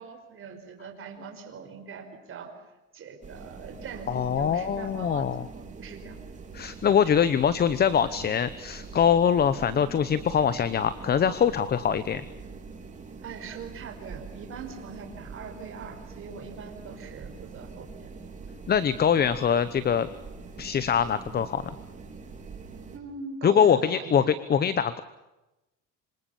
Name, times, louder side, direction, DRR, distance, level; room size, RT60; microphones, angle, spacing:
voice 1, 0.0-2.5 2.9-5.3 5.5-6.2 9.7-9.8 13.2-18.1 22.9-24.3, right 5 dB, 40° right, 4 dB, 5.5 m, -42 dB
sound 1, 3.2-23.0, right 4 dB, 20° right, 3.7 m, -44 dB
voice 2, 4.1-5.5 6.5-12.2 18.7-20.1 20.6-21.6 23.4-25.0, left 8 dB, 30° left, 14 dB, 0.9 m, -23 dB
26.5 x 26.0 x 7.2 m, 1.0 s
cardioid pair, 155°, 34 cm